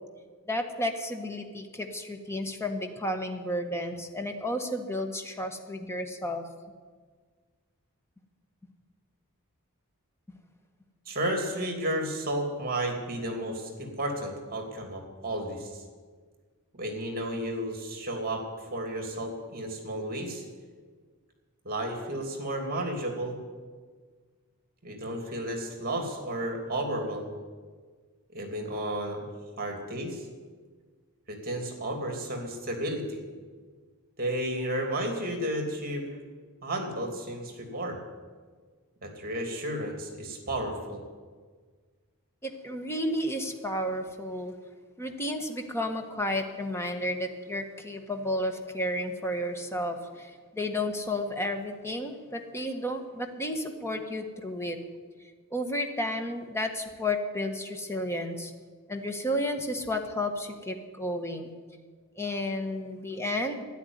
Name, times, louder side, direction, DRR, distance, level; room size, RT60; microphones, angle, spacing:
voice 1, 0.5-6.4 42.4-44.5 45.0-54.8 55.5-58.5 58.9-61.5 62.2-63.6, left 1 dB, 10° left, 5 dB, 1.5 m, -32 dB
voice 2, 11.1-15.8 16.7-20.4 21.6-23.4 24.8-27.3 28.3-29.3 29.6-30.3 31.3-33.2 34.2-36.0 36.6-38.0 39.0-41.0, right 1 dB, 45° right, 3 dB, 3.0 m, -32 dB
12.5 x 11.0 x 9.7 m, 1.5 s
head